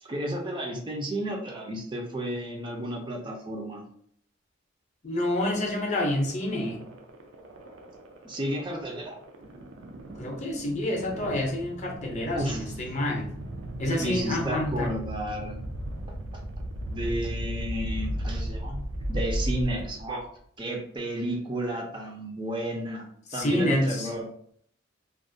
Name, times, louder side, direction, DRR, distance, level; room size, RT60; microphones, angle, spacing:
voice 1, 0.0-3.8 8.2-9.2 12.3-12.6 14.0-15.6 16.9-18.8 19.1-20.3 20.6-24.3, right 1 dB, 25° right, 1 dB, 0.4 m, -32 dB
voice 2, 5.0-6.8 10.2-13.3 13.8-14.9 23.3-24.1, left 1 dB, 35° left, 1 dB, 0.5 m, -28 dB
sound 1, 5.2-20.3, right 1 dB, 85° right, 0.4 m, -36 dB
2.3 x 2.1 x 2.6 m, 0.65 s
head